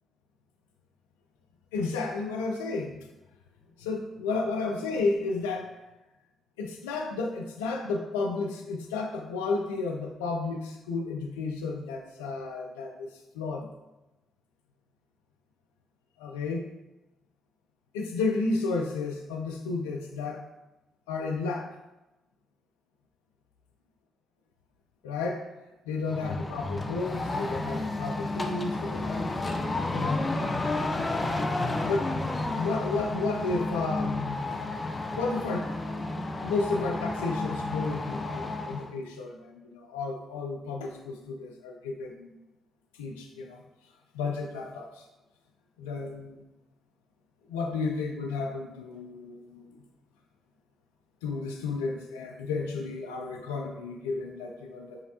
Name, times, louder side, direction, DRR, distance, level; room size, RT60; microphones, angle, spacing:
voice 1, 1.7-3.0 3.8-5.7 6.6-13.1 13.3-13.7 16.2-16.7 17.9-20.5 21.1-21.7 25.0-25.5 25.9-29.2 29.9-30.3 31.8-32.2 32.5-34.6 35.1-35.7 36.4-42.3 43.0-43.6 44.1-45.0 45.8-46.4 47.5-49.8 51.2-55.0, left 3 dB, 80° left, 1 dB, 0.4 m, -32 dB
sound 1, 26.1-38.9, left 2 dB, 30° left, 0.5 m, -31 dB
4.7 x 3.3 x 2.8 m, 1.0 s
hypercardioid pair, 40°, 0 cm